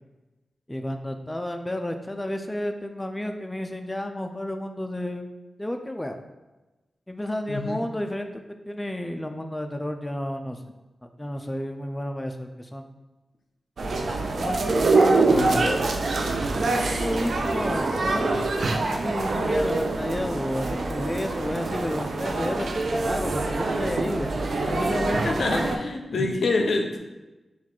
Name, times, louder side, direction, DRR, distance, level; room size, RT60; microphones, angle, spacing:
voice 1, 0.7-5.3 5.6-6.2 7.1-8.3 8.7-10.6 11.0-12.9 14.4-15.8 16.9-18.3 19.0-25.8 26.1-26.3, left 1 dB, 15° left, 5 dB, 0.4 m, -31 dB
voice 2, 7.5-7.8 15.3-15.6 25.2-27.0, left 3 dB, 80° left, 3 dB, 0.5 m, -26 dB
sound 1, 13.8-25.8, right 3 dB, 75° right, 0.4 m, -25 dB
4.5 x 2.4 x 3.7 m, 1.1 s
cardioid pair, 60°, 0 cm